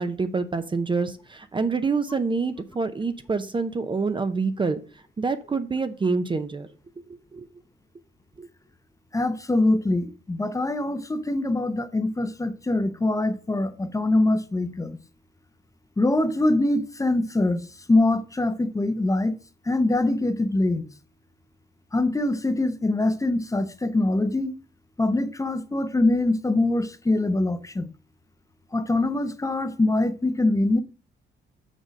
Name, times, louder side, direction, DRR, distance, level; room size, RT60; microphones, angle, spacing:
voice 1, 0.0-4.8 5.2-6.7 7.3-7.4 8.4-8.5, right 4 dB, 25° right, 0.6 m, -26 dB
voice 2, 9.1-15.0 16.0-19.4 19.6-20.9 21.9-24.5 25.0-27.9 28.7-30.8, left 2 dB, 15° left, 0.7 m, -23 dB
6.4 x 3.9 x 6.3 m
cardioid pair, 90°, 20 cm